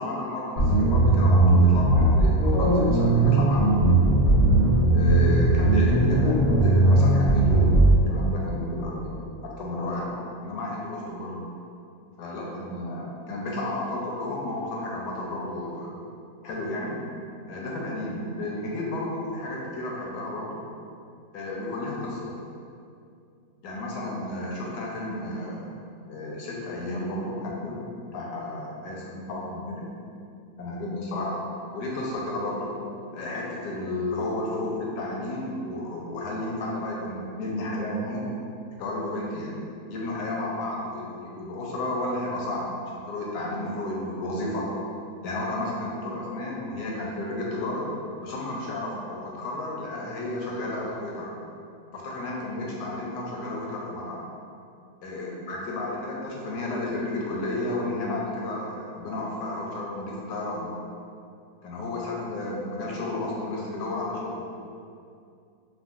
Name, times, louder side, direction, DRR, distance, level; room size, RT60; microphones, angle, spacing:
voice 1, 0.0-4.0 4.9-9.3 9.6-10.1 10.4-11.5 12.2-15.9 16.4-17.0 17.5-20.6 21.3-22.3 23.6-25.6 26.1-29.9 30.6-31.4 31.7-32.8 33.1-38.2 38.8-39.6 39.9-42.8 43.1-44.7 45.2-47.8 48.2-51.3 51.9-54.2 55.0-60.7 61.6-64.4, left 1 dB, 85° left, -3 dB, 1.2 m, -32 dB
sound 1, 0.6-7.9, right 2 dB, 35° left, 0.5 m, -19 dB
3.6 x 2.1 x 2.4 m, 2.4 s
omnidirectional pair, 1.8 m